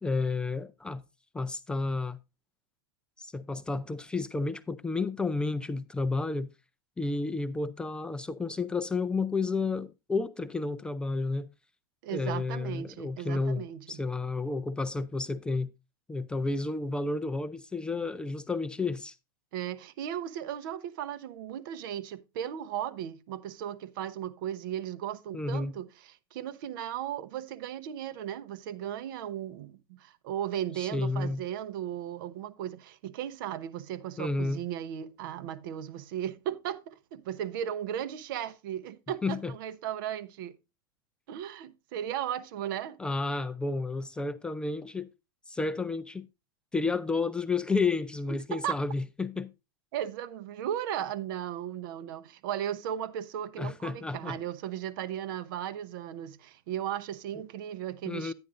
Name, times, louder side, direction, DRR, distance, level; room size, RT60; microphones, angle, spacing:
voice 1, 0.0-1.0 1.3-2.2 3.2-6.5 7.0-11.5 12.1-15.7 16.1-19.1 25.3-25.7 30.8-31.4 34.2-34.6 39.2-39.5 43.0-45.1 45.5-46.3 46.7-49.5 53.6-54.4 58.1-58.3, left 3 dB, 5° left, 0.4 m, -31 dB
voice 2, 12.0-14.0 19.5-40.6 41.3-43.0 48.3-48.8 49.9-58.3, right 10 dB, 65° right, 0.9 m, -36 dB
10.5 x 9.7 x 2.5 m
supercardioid pair, 145°, 12 cm